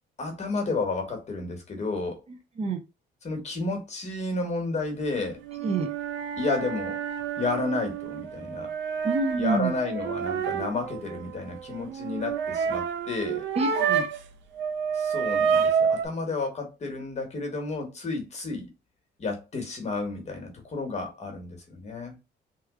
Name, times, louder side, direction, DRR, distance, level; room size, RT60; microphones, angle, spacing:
voice 1, 0.2-2.2 3.2-5.4 6.4-7.0 7.4-8.7 9.4-13.4 14.9-18.7 19.2-22.2, left 3 dB, 35° left, 1.2 m, -31 dB
voice 2, 2.3-2.8 5.6-5.9 9.0-9.7 13.6-14.1, right 3 dB, 35° right, 0.7 m, -27 dB
sound 1, 5.4-14.3 14.6-16.1, right 7 dB, 75° right, 0.6 m, -29 dB
3.0 x 2.3 x 3.6 m
cardioid pair, 135°, 20 cm